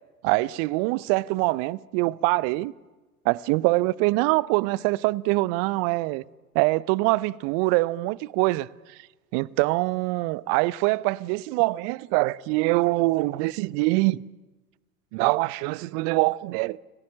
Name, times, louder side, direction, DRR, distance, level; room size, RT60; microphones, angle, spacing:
voice 1, 0.2-2.7 3.2-6.2 6.5-8.7 9.3-14.2 15.1-16.8, right 22 dB, 40° right, 0.7 m, -24 dB
29.5 x 17.0 x 7.5 m
figure-of-eight pair, 85°, 45 cm